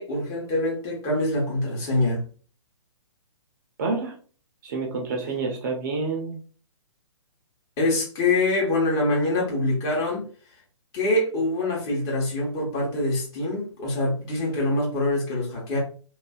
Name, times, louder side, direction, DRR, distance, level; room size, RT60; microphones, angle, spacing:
voice 1, 0.0-2.2 7.8-10.2 10.9-15.8, left 2 dB, 20° left, -3 dB, 1.0 m, -25 dB
voice 2, 3.8-4.1 4.6-6.4, right 3 dB, 35° right, 1 dB, 0.6 m, -28 dB
2.6 x 2.4 x 2.3 m, 0.41 s
figure-of-eight pair, 125°, 16 cm